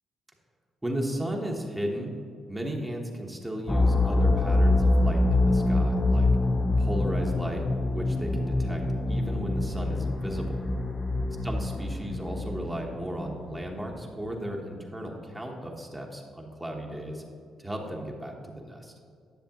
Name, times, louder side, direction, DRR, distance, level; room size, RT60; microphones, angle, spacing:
voice 1, 0.8-2.1 2.5-6.3 6.8-10.6 11.4-17.2 17.6-18.9, right 1 dB, 10° right, 0 dB, 1.1 m, -35 dB
sound 1, 3.7-13.5, left 2 dB, 25° left, 0.5 m, -25 dB
10.5 x 6.6 x 2.9 m, 2.4 s
cardioid pair, 90°, 0 cm